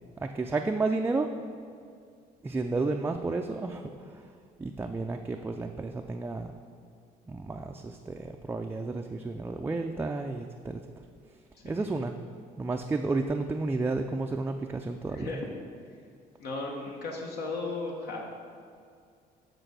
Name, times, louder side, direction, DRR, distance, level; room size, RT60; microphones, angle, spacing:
voice 1, 0.2-1.3 2.4-4.3 4.6-6.5 7.3-10.8 11.6-12.2 12.6-15.3, right 3 dB, 15° right, 4 dB, 0.3 m, -32 dB
voice 2, 11.2-11.8 15.1-15.5 16.4-18.2, left 3 dB, 70° left, 0 dB, 1.1 m, -36 dB
7.8 x 4.0 x 6.6 m, 2.3 s
cardioid pair, 110°, 17 cm